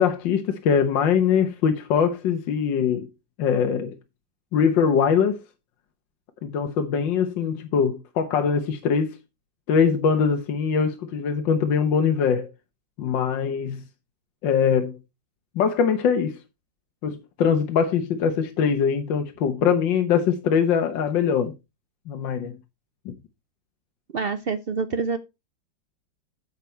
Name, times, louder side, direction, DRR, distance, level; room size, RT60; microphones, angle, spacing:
voice 1, 0.0-3.1 3.4-4.0 4.5-5.4 6.4-9.2 9.7-12.5 13.0-13.8 14.4-15.0 15.6-16.4 17.0-21.5 22.1-22.5 23.1-23.2, left 7 dB, 80° left, 1.7 m, -22 dB
voice 2, 24.1-25.2, right 4 dB, 85° right, 0.5 m, -26 dB
9.4 x 7.4 x 4.4 m
omnidirectional pair, 2.0 m